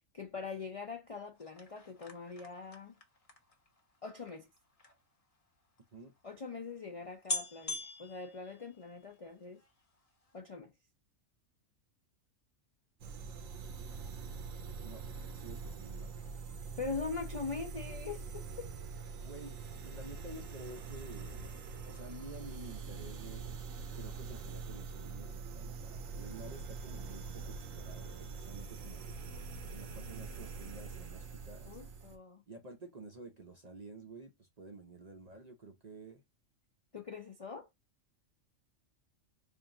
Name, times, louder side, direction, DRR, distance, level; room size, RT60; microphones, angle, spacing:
voice 1, 0.1-3.0 4.0-4.5 6.2-9.6 10.3-10.7 16.8-18.7 31.7-32.4 36.9-37.7, left 4 dB, 55° left, 0.3 m, -42 dB
sound 1, 1.3-5.0 5.8-5.9 6.0-6.2 6.8-6.9 7.2-9.2 9.6-10.0 10.2-10.3, left 3 dB, 30° left, 0.8 m, -43 dB
sound 2, 13.0-32.2, right 5 dB, 80° right, 1.1 m, -44 dB
voice 2, 15.4-16.1 19.2-19.6 19.8-23.5 23.9-29.1 29.7-31.7 32.5-36.2, right 2 dB, 45° right, 0.5 m, -50 dB
3.6 x 2.5 x 3.6 m
omnidirectional pair, 1.4 m